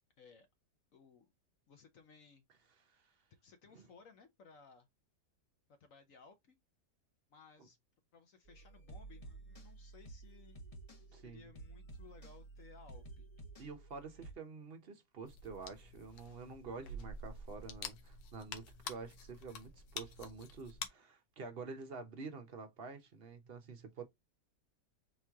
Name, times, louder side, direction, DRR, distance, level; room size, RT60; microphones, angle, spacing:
voice 1, 0.2-0.5 0.9-1.3 1.7-2.4 3.4-4.9 5.8-6.6 7.3-7.8 8.1-10.6 11.1-13.3, left 5 dB, 60° left, 1.1 m, -60 dB
voice 2, 2.8-3.1 3.7-3.9 7.6-7.7 11.1-11.5 13.6-24.1, right 4 dB, 50° right, 0.7 m, -48 dB
sound 1, 8.5-14.3, right 2 dB, 25° left, 0.8 m, -53 dB
sound 2, 15.2-20.9, left 4 dB, 85° left, 1.4 m, -48 dB
4.4 x 3.0 x 3.5 m
omnidirectional pair, 1.9 m